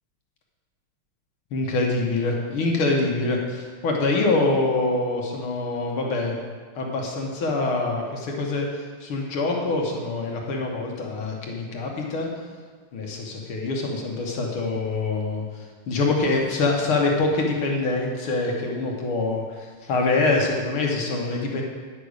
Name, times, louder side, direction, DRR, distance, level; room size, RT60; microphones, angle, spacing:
voice 1, 1.5-6.4 6.8-12.3 12.9-21.6, left 3 dB, 75° left, 0 dB, 2.2 m, -25 dB
9.8 x 6.7 x 6.4 m, 1.5 s
omnidirectional pair, 2.4 m